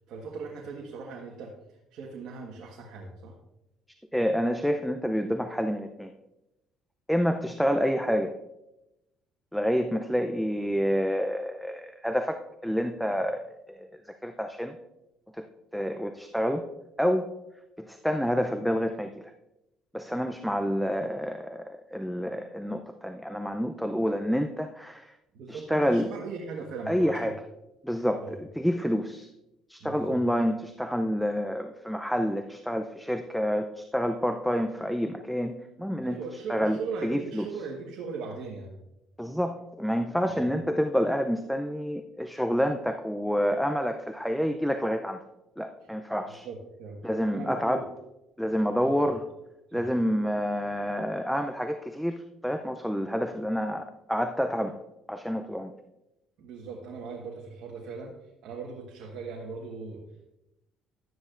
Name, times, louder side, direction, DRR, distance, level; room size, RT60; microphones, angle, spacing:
voice 1, 0.1-1.5 1.9-3.3 20.7-20.8 25.3-27.3 28.2-28.4 29.8-30.2 36.0-38.7 40.2-40.4 46.2-47.0 47.3-47.9 48.8-49.1 49.7-49.9 56.4-58.1 58.4-60.0, right 4 dB, 70° right, -1 dB, 1.4 m, -39 dB
voice 2, 4.1-6.1 7.1-8.3 9.5-13.4 13.7-13.9 14.2-14.8 15.4-15.5 15.7-16.6 17.0-17.3 17.8-19.3 19.9-25.1 25.5-26.1 26.9-27.3 27.8-29.3 29.7-36.2 36.5-37.5 39.2-45.2 45.6-46.5 47.0-47.8 48.4-49.2 49.7-52.2 52.4-54.8 55.1-55.7, equal, ahead, 7 dB, 0.5 m, -28 dB
12.0 x 9.3 x 2.5 m, 0.93 s
cardioid pair, 110°, 0 cm